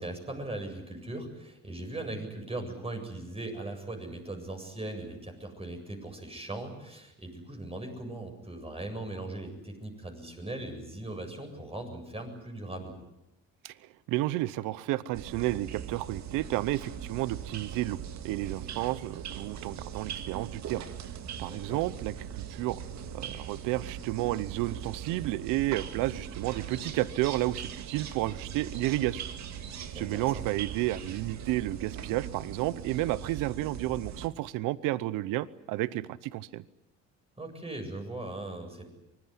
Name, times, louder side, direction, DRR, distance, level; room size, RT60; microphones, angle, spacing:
voice 1, 0.0-12.9 21.5-21.8 29.9-30.5 37.4-39.0, right 2 dB, 20° right, 4 dB, 7.8 m, -39 dB
voice 2, 14.1-18.0 18.2-20.8 21.4-22.8 23.1-29.2 29.9-36.6, right 16 dB, 80° right, 18 dB, 0.9 m, -31 dB
sound 1, 15.1-34.3, right 8 dB, 60° right, 2.1 m, -40 dB
24.5 x 20.0 x 9.6 m, 0.91 s
cardioid pair, 95°, 32 cm